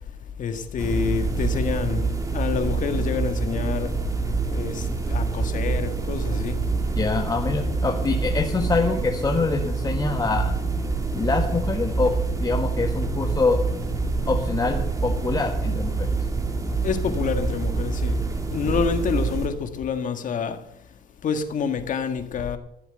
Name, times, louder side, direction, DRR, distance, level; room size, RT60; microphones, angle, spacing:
voice 1, 0.4-4.0 4.5-6.6 16.8-18.2 18.5-20.6 21.2-22.6, left 6 dB, 50° left, 1.7 m, -27 dB
sound 1, 0.8-19.5, right 4 dB, 20° right, 1.9 m, -26 dB
voice 2, 6.9-10.5 11.1-13.6 14.3-16.1, left 3 dB, 25° left, 1.4 m, -25 dB
15.0 x 7.8 x 7.9 m
cardioid pair, 110°, 17 cm